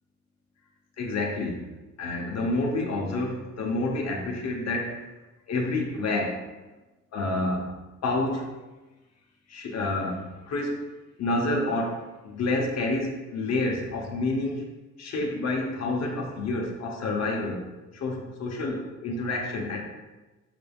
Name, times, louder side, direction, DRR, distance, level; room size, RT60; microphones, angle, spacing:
voice 1, 1.0-1.6 2.0-5.0 5.5-6.4 7.1-7.7 8.0-8.5 9.5-10.9 11.2-14.6 15.0-17.7 17.9-19.8, left 2 dB, 60° left, 0 dB, 0.9 m, -28 dB
5.9 x 3.4 x 2.3 m, 1.1 s
cardioid pair, 90°, 30 cm